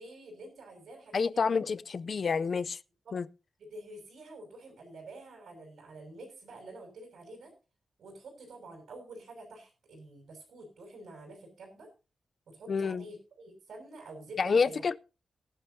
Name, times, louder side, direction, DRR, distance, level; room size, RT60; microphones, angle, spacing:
voice 1, 0.0-1.5 3.0-3.2 3.6-7.5 8.0-11.9 12.5-14.8, right 2 dB, 85° right, 6.4 m, -48 dB
voice 2, 1.1-2.8 3.1-3.3 12.7-13.1 14.4-15.0, left 5 dB, 40° left, 0.5 m, -28 dB
19.0 x 11.0 x 2.8 m
wide cardioid pair, 175°, 0 cm